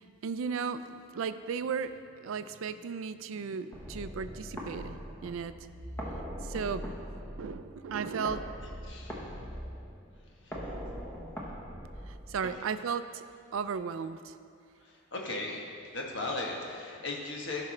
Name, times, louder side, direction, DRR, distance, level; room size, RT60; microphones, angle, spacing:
voice 1, 0.2-5.0 5.2-5.5 6.4-6.9 7.4-8.4 12.1-13.2 13.5-14.4, right 6 dB, 75° right, 12 dB, 0.4 m, -35 dB
sound 1, 3.7-12.7, equal, 10° left, 1.0 m, -41 dB
voice 2, 8.8-9.3 10.2-10.8 14.8-15.6 15.9-17.6, left 2 dB, 60° left, -1 dB, 1.2 m, -37 dB
14.5 x 5.9 x 3.3 m, 2.3 s
head